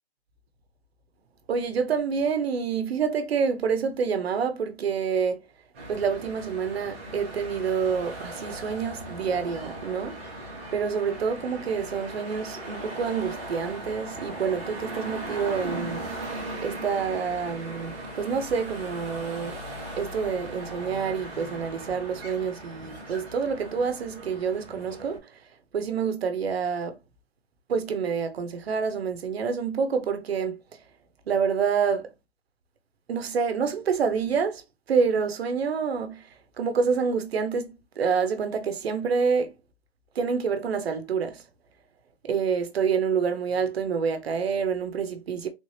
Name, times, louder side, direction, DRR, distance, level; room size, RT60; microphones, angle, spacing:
voice 1, 1.5-5.4 5.9-10.2 10.7-16.1 16.6-19.6 20.0-25.4 25.7-27.0 27.7-30.8 31.3-32.1 33.1-34.6 34.9-39.5 40.1-41.4 42.2-45.5, right 6 dB, 65° right, 0.8 m, -27 dB
sound 1, 5.7-25.2, right 1 dB, 10° right, 0.6 m, -38 dB
3.6 x 3.2 x 2.6 m
hypercardioid pair, 175°, 34 cm